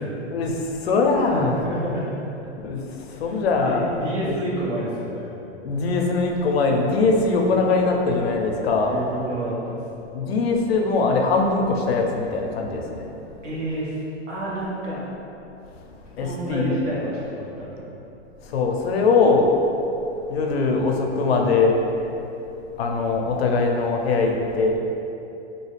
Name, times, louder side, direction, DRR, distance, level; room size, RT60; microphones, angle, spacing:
voice 1, 0.3-1.6 2.6-2.8 3.1-3.9 4.2-4.3 5.6-8.9 10.1-13.1 16.1-16.8 18.4-19.6 20.3-21.8 22.8-24.8, left 4 dB, 60° left, 1 dB, 0.5 m, -21 dB
voice 2, 1.3-2.2 3.6-5.3 8.8-9.8 13.4-13.9 14.3-15.0 16.2-17.9, right 1 dB, 85° right, -7 dB, 1.3 m, -29 dB
3.1 x 2.7 x 3.1 m, 2.9 s
supercardioid pair, 180°, 36 cm